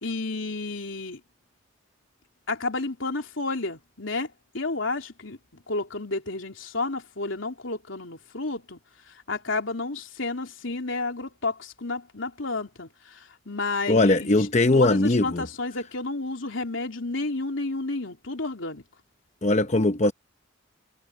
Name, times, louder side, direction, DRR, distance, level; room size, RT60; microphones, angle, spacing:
voice 1, 0.0-1.2 2.5-5.4 5.7-8.8 9.1-14.4 14.7-18.8, left 3 dB, 85° left, 3.3 m, -31 dB
voice 2, 13.9-15.5 19.4-20.1, left 2 dB, 35° left, 0.9 m, -20 dB
head